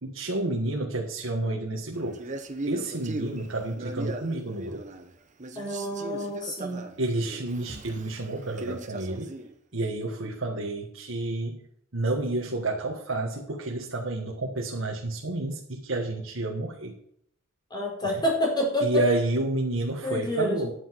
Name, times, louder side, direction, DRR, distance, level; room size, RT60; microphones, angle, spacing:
voice 1, 0.0-2.2 2.7-4.8 7.0-9.3 9.7-11.6 11.9-16.9 18.0-18.2 18.8-20.7, right 2 dB, 90° right, 0 dB, 1.5 m, -30 dB
Male speech man speaking, 2.1-5.1 5.4-9.5, right 2 dB, 40° right, 1.2 m, -38 dB
voice 2, 5.5-6.8 17.7-18.9 20.0-20.7, equal, 20° left, -2 dB, 4.8 m, -28 dB
10.0 x 9.6 x 4.6 m, 0.69 s
head